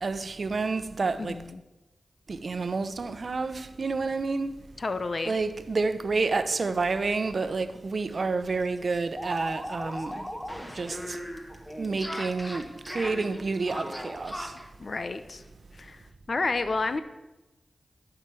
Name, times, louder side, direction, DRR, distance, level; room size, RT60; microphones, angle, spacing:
voice 1, 0.0-1.4 2.3-4.5 5.2-10.2 10.7-11.2 11.8-14.5, right 4 dB, 60° right, 0.8 m, -29 dB
voice 2, 1.2-1.6 4.8-5.3 14.8-15.4 15.8-16.0 16.3-17.0, left 3 dB, 55° left, 0.7 m, -30 dB
sound 1, 7.7-7.8 8.1-8.2 8.5-14.7, equal, 10° left, 1.4 m, -38 dB
11.0 x 6.0 x 8.4 m
cardioid pair, 60°, 0 cm